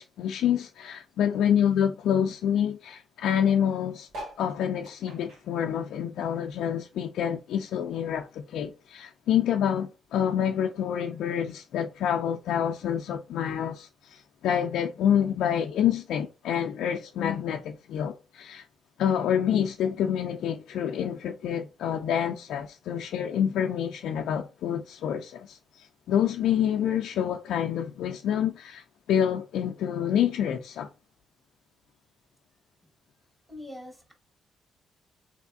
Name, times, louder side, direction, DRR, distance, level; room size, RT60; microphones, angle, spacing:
voice 1, 0.0-4.1 4.4-18.7 19.0-30.9, left 9 dB, 80° left, 0.4 m, -27 dB
sound 1, 4.1-6.8 7.2-8.7 9.2-9.3 9.4-9.5 9.7-10.1 10.9-11.0, right 1 dB, 75° right, 1.9 m, -46 dB
voice 2, 33.5-34.1, left 1 dB, 10° right, 1.8 m, -42 dB
3.4 x 3.3 x 2.4 m
cardioid pair, 90°, 0 cm